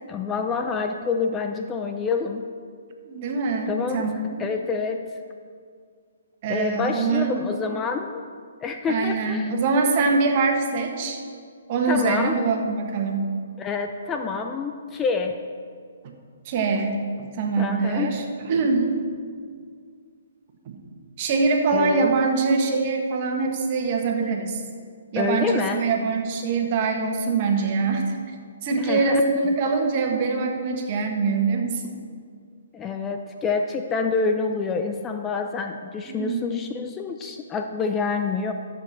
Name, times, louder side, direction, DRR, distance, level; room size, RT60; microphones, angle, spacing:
voice 1, 0.1-2.5 3.7-4.1 4.4-5.0 6.5-8.2 8.6-9.5 11.9-12.4 13.6-15.4 17.6-18.1 21.7-22.1 25.2-25.8 28.8-29.2 32.7-38.5, left 5 dB, 15° left, 5 dB, 0.6 m, -27 dB
voice 2, 3.0-4.4 6.4-7.4 8.9-11.2 11.7-13.3 16.0-16.1 16.4-18.9 20.6-20.8 21.2-24.6 25.1-28.1 28.6-31.9 36.1-36.6, right 4 dB, 40° right, 2 dB, 1.6 m, -24 dB
13.0 x 7.2 x 4.4 m, 2.1 s
hypercardioid pair, 140°, 0 cm